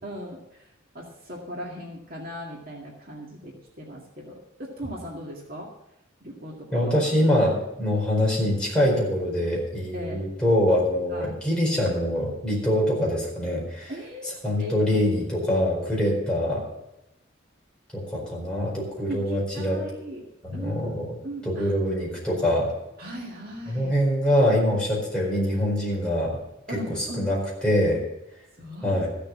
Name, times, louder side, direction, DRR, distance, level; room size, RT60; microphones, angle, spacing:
voice 1, 0.0-5.7 6.2-7.0 9.9-10.2 11.1-11.4 13.9-14.3 14.6-15.0 15.4-15.6 19.1-20.2 20.5-21.7 23.0-23.9 26.7-27.3 28.6-29.0, equal, 45° right, -2 dB, 2.1 m, -38 dB
voice 2, 6.7-13.9 14.4-16.6 17.9-19.8 20.4-21.1 21.4-22.7 23.7-26.3 27.0-27.4 27.6-28.0 28.8-29.1, left 1 dB, 5° left, -4 dB, 4.5 m, -24 dB
15.0 x 6.9 x 7.2 m, 0.88 s
head